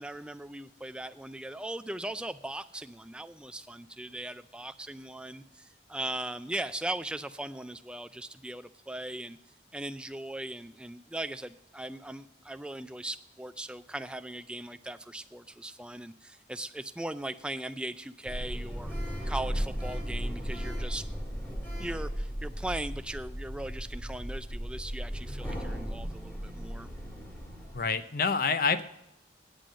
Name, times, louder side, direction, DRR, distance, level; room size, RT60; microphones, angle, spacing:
voice 1, 0.0-9.4 9.7-18.9 19.2-21.1 21.4-26.9, right 1 dB, 5° right, 11 dB, 0.3 m, -39 dB
Sliding door, 18.2-27.8, equal, 10° left, 1.9 m, -36 dB
voice 2, 27.7-28.8, left 5 dB, 50° left, 11 dB, 0.6 m, -27 dB
9.0 x 8.6 x 6.2 m, 0.80 s
head